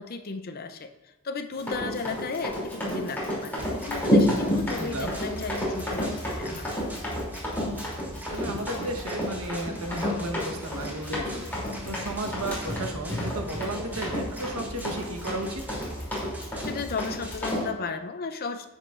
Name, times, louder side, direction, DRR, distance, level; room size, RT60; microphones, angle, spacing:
voice 1, 0.0-6.7 16.7-18.7, left 4 dB, 45° left, 8 dB, 0.6 m, -35 dB
Run, 1.6-17.6, equal, 10° left, 3.0 m, -30 dB
sound 1, 3.6-17.6, equal, 10° right, 1.3 m, -40 dB
voice 2, 4.7-5.2 8.3-15.6, right 1 dB, 70° right, 3 dB, 1.2 m, -34 dB
10.5 x 8.0 x 2.5 m, 1.1 s
head